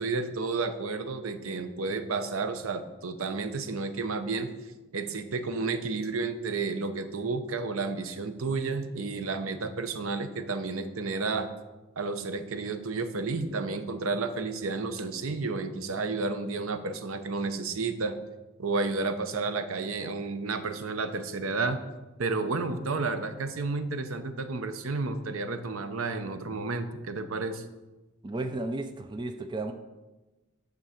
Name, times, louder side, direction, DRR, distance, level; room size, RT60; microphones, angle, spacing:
voice 1, 0.0-4.5 4.9-11.5 12.0-18.2 18.6-21.8 22.2-27.6, right 3 dB, 80° right, 10 dB, 0.7 m, -31 dB
voice 2, 28.2-29.7, right 2 dB, 20° right, 6 dB, 0.4 m, -33 dB
9.1 x 3.9 x 7.0 m, 1.1 s
head